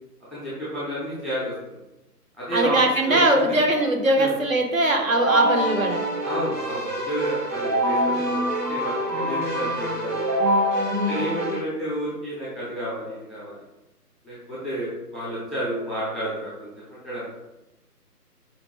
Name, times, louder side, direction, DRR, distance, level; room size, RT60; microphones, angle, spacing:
voice 1, 0.3-1.8 2.4-2.8 3.1-3.4 4.2-4.3 6.2-10.3 11.1-13.6 14.2-17.3, right 1 dB, ahead, -9 dB, 0.5 m, -31 dB
voice 2, 2.5-6.0 10.9-11.3, right 1 dB, 55° right, 3 dB, 0.6 m, -21 dB
Keyboard (musical), 5.1-11.6, right 1 dB, 90° right, 1.4 m, -25 dB
4.3 x 2.5 x 2.9 m, 0.96 s
figure-of-eight pair, 155°, 48 cm